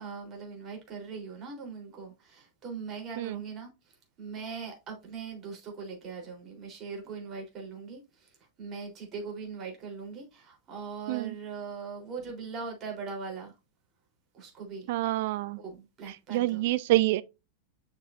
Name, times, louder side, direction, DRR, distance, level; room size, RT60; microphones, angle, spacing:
voice 1, 0.0-3.7 4.2-8.3 8.6-13.5 14.3-14.9 15.6-16.6, right 5 dB, 30° right, 3.6 m, -40 dB
voice 2, 14.9-15.6 16.3-17.2, right 16 dB, 50° right, 0.4 m, -27 dB
7.6 x 6.0 x 2.6 m
figure-of-eight pair, 90°, 0 cm